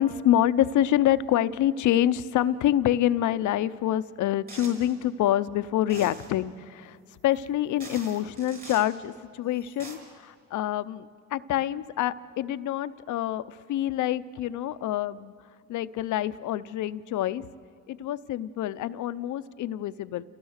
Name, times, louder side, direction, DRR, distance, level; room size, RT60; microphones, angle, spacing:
voice 1, 0.0-7.0 7.2-15.3 15.7-17.5 17.9-20.2, left 12 dB, 80° left, 14 dB, 0.7 m, -26 dB
sound 1, 4.5-5.0 5.9-6.4 7.3-7.4 7.8-8.9 9.6-10.0, right 2 dB, 30° right, 5.3 m, -44 dB
29.5 x 16.0 x 6.5 m, 2.3 s
cardioid pair, 90°, 30 cm